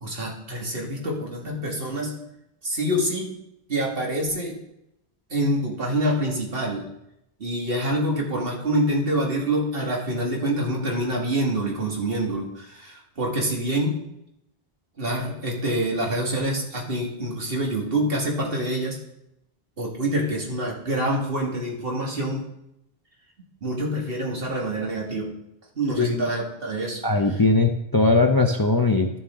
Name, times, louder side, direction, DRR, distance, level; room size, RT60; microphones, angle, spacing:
voice 1, 0.0-2.1 2.6-3.3 3.7-4.6 5.3-6.8 7.4-14.0 15.0-19.0 19.8-22.5 23.6-25.3 25.8-27.0, right 1 dB, 65° right, -1 dB, 2.1 m, -26 dB
voice 2, 27.0-29.1, left 3 dB, 25° left, 5 dB, 0.5 m, -20 dB
12.5 x 7.2 x 3.7 m, 0.83 s
omnidirectional pair, 1.0 m